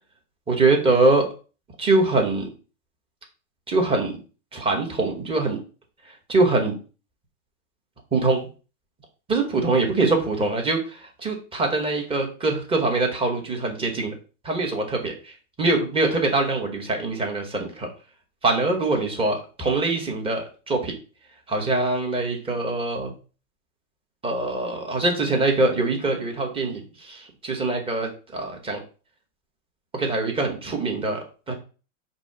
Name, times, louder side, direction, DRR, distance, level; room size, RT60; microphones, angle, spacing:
voice 1, 0.5-1.3 1.8-2.5 3.7-4.2 4.5-5.6 6.3-6.8 8.1-8.5 9.3-14.1 14.4-15.1 15.6-17.9 18.4-20.9 21.5-23.1 24.2-26.8 27.1-28.8 29.9-31.5, right 2 dB, 15° right, 2 dB, 1.0 m, -23 dB
5.1 x 2.1 x 4.6 m, 0.35 s
hypercardioid pair, 135°, 41 cm